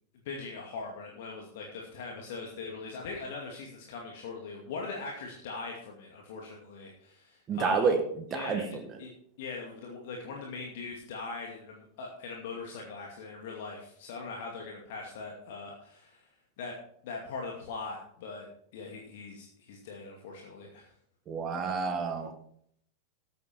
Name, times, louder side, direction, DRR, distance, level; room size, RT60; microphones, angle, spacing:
voice 1, 0.2-8.0 8.3-8.7 9.0-9.1 9.4-16.3 16.6-20.9, left 4 dB, 55° left, 0 dB, 2.3 m, -41 dB
voice 2, 7.5-8.0 8.3-8.6 21.3-22.3, right 5 dB, 25° right, 6 dB, 1.8 m, -28 dB
13.0 x 9.6 x 4.5 m, 0.66 s
figure-of-eight pair, 90°, 0 cm